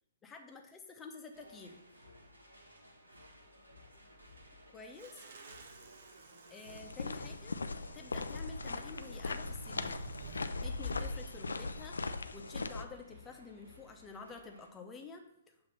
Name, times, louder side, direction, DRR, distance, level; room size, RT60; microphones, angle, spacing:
voice 1, 0.2-1.8 4.7-5.3 6.5-7.6 7.9-10.0 10.6-15.6, left 4 dB, 15° left, 3 dB, 0.8 m, -50 dB
sound 1, 1.3-14.7, left 3 dB, 85° right, 1.4 m, -52 dB
sound 2, 4.9-10.5, right 6 dB, 55° right, 0.7 m, -54 dB
sound 3, 6.7-12.8, left 3 dB, 75° left, 0.4 m, -39 dB
7.4 x 2.9 x 5.5 m, 0.82 s
figure-of-eight pair, 125°, 0 cm